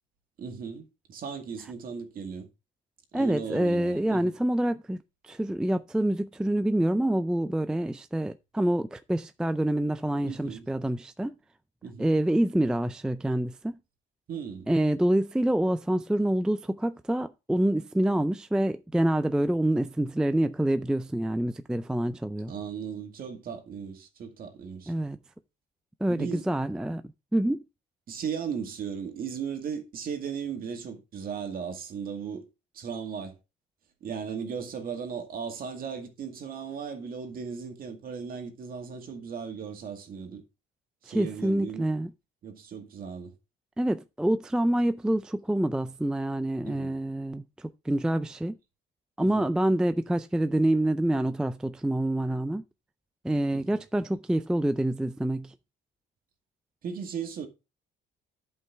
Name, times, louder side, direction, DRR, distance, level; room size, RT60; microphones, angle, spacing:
voice 1, 0.4-2.5 3.1-4.3 10.2-10.7 11.8-12.1 14.3-14.7 22.5-24.9 26.1-26.5 28.1-32.5 32.7-33.4 34.0-40.4 41.0-41.9 42.4-43.3 46.6-46.9 49.2-49.4 53.5-53.7 56.8-57.5, right 6 dB, 45° right, 2.2 m, -36 dB
voice 2, 3.1-5.0 5.2-11.4 12.0-13.8 14.7-22.5 24.9-25.2 26.0-27.0 27.3-27.6 41.1-42.1 43.8-48.5 49.2-52.6 53.2-55.5, right 1 dB, 5° right, 0.4 m, -27 dB
11.0 x 5.5 x 3.5 m
cardioid pair, 130°, 20 cm